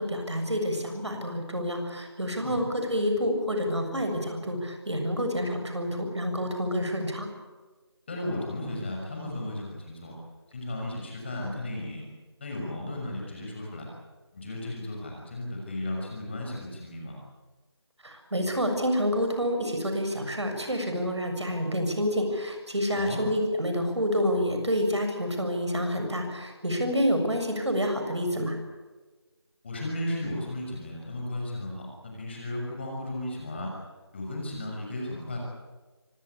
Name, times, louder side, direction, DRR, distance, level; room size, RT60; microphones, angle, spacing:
voice 1, 0.0-7.3 18.0-28.6, equal, 85° right, 5 dB, 6.9 m, -28 dB
voice 2, 8.1-10.1 10.5-12.0 12.4-13.9 14.3-17.1 23.0-23.2 29.6-33.7 34.1-35.4, left 1 dB, 25° left, -1 dB, 6.3 m, -35 dB
24.5 x 18.5 x 8.7 m, 1.3 s
figure-of-eight pair, 170°, 14 cm